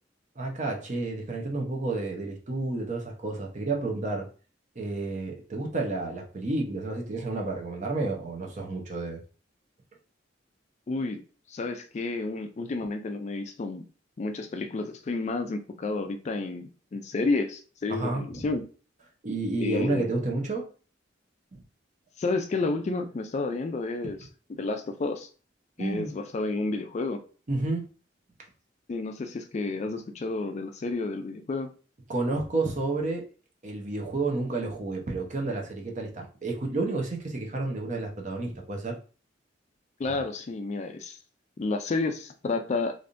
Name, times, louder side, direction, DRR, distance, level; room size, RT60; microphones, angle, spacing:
voice 1, 0.4-4.3 4.8-9.2 17.9-18.5 19.2-20.7 25.8-26.2 27.5-27.8 32.1-33.2 33.6-39.0 40.1-40.2, right 2 dB, 40° right, 1 dB, 0.8 m, -30 dB
voice 2, 10.9-11.2 11.5-13.8 14.2-18.6 19.6-20.1 22.2-24.2 24.5-25.3 25.8-27.2 28.9-31.7 40.0-41.2 41.6-42.9, left 3 dB, 35° left, 6 dB, 0.3 m, -30 dB
3.3 x 2.6 x 2.5 m, 0.37 s
head